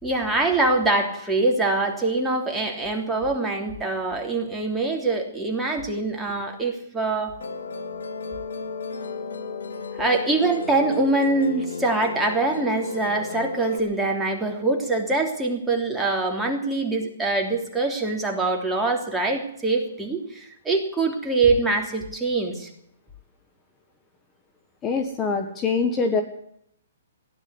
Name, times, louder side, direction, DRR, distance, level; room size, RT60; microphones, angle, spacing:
voice 1, 0.0-7.3 10.0-22.7, right 3 dB, 10° right, 1 dB, 3.2 m, -24 dB
Musical instrument, 7.4-13.8, left 5 dB, 80° left, 2.0 m, -34 dB
voice 2, 24.8-26.2, left 4 dB, 20° left, 5 dB, 1.5 m, -24 dB
16.5 x 11.0 x 8.0 m, 0.71 s
hypercardioid pair, 135°, 0 cm